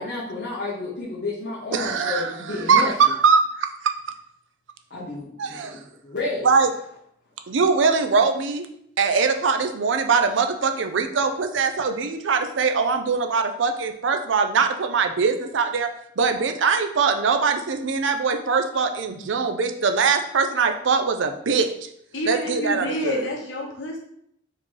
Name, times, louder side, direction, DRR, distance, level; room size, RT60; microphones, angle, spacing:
voice 1, 0.0-2.9 4.9-6.5, left 2 dB, 60° left, -7 dB, 1.0 m, -31 dB
voice 2, 1.7-3.0 3.2-3.4 3.8-3.9 5.4-5.8 6.4-6.7 7.5-8.7 9.0-15.9 16.2-21.7 22.3-23.3, right 5 dB, 75° right, 7 dB, 0.5 m, -22 dB
voice 3, 22.1-24.0, left 1 dB, 80° left, -1 dB, 1.2 m, -28 dB
4.7 x 3.0 x 3.8 m, 0.72 s
head